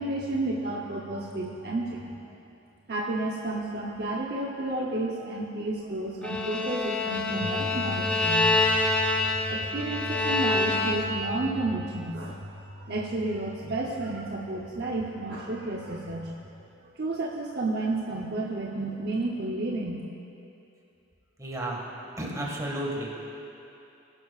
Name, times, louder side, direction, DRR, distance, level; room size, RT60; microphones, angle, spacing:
voice 1, 0.0-2.1 2.9-16.3 17.0-20.0, right 2 dB, 55° right, -2 dB, 0.8 m, -31 dB
Bowed string instrument, 6.2-11.4, left 2 dB, 5° left, 0.8 m, -26 dB
voice 2, 21.4-21.8 22.2-23.1, right 1 dB, 20° right, -2 dB, 1.8 m, -32 dB
21.0 x 10.5 x 2.5 m, 2.8 s
head